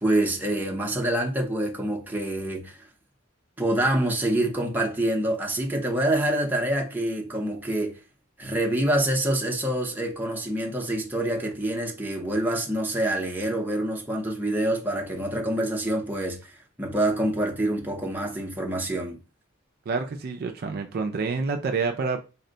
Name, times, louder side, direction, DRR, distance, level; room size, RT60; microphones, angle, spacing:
voice 1, 0.0-2.8 3.6-8.0 8.4-16.5 16.8-19.2, right 1 dB, 10° right, 0.6 m, -26 dB
voice 2, 19.9-22.2, right 4 dB, 45° right, 0.4 m, -28 dB
4.2 x 2.1 x 3.8 m
head